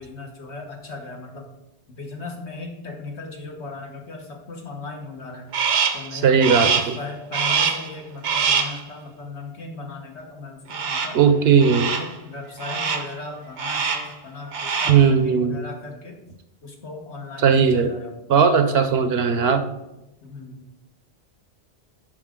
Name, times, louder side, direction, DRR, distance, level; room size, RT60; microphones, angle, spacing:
voice 1, 0.0-1.5 1.9-5.5 5.9-11.2 11.7-16.2 16.6-18.1 20.2-20.6, left 3 dB, 75° left, 1 dB, 1.8 m, -37 dB
Crow, 5.5-6.1 6.4-7.0 7.3-7.9 8.2-8.8 10.7-11.2 11.6-12.1 12.6-13.1 13.6-14.1 14.4-15.1, right 6 dB, 90° right, 1.3 m, -24 dB
voice 2, 6.1-7.0 11.1-11.9 14.9-15.6 17.4-17.9 18.3-19.6, right 6 dB, 70° right, 10 dB, 0.9 m, -17 dB
12.0 x 5.1 x 3.7 m, 0.93 s
omnidirectional pair, 1.1 m